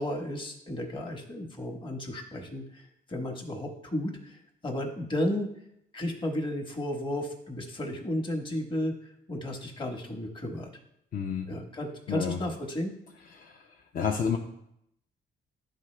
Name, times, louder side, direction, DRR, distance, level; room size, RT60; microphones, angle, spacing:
voice 1, 0.0-5.5 5.9-8.9 9.3-10.7 11.5-12.9, left 1 dB, 25° left, 2 dB, 1.2 m, -33 dB
voice 2, 11.1-11.5 12.1-12.4 13.3-13.7 13.9-14.4, left 6 dB, 45° left, 2 dB, 0.7 m, -30 dB
10.5 x 3.8 x 3.2 m, 0.77 s
cardioid pair, 90°, 20 cm